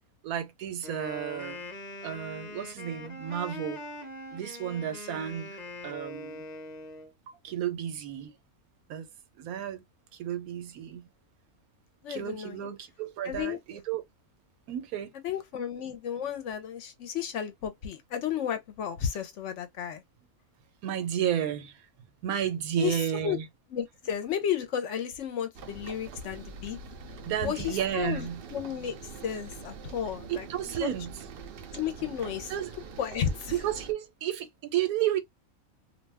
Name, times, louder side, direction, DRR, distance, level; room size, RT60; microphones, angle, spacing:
voice 1, 0.2-1.6 2.0-3.8 4.3-5.6 5.8-6.5 7.4-8.3 8.9-9.1 9.4-9.8 10.1-11.0 12.1-14.0 14.7-15.1 20.8-21.8 22.2-23.5 27.2-28.4 30.3-31.1 32.5-32.7 33.5-35.2, right 10 dB, 85° right, 1.1 m, -32 dB
Wind instrument woodwind instrument, 0.8-7.1, left 2 dB, 40° left, 0.7 m, -42 dB
voice 2, 12.0-12.7 13.2-13.6 15.2-20.0 22.8-23.4 23.7-26.8 27.4-29.0 29.2-30.5 30.8-30.9 31.7-32.5 33.0-33.5, left 9 dB, 65° left, 0.8 m, -33 dB
sound 1, 25.5-33.9, right 4 dB, 70° right, 0.5 m, -44 dB
2.6 x 2.1 x 3.3 m
omnidirectional pair, 1.5 m